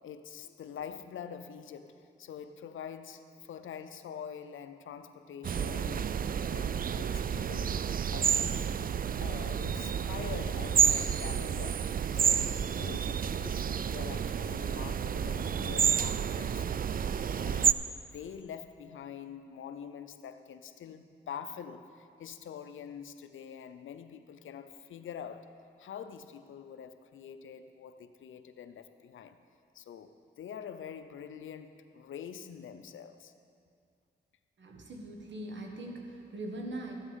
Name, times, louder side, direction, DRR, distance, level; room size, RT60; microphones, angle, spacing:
voice 1, 0.0-6.1 6.5-8.8 9.2-16.7 17.3-25.5 25.8-29.4 29.7-30.1 30.4-33.3, left 8 dB, 85° left, 10 dB, 0.6 m, -45 dB
sound 1, 5.4-17.7, right 8 dB, 45° right, 0.4 m, -30 dB
voice 2, 34.6-36.9, right 1 dB, 65° right, 1 dB, 1.6 m, -41 dB
13.5 x 8.0 x 5.6 m, 2.4 s
cardioid pair, 50°, 20 cm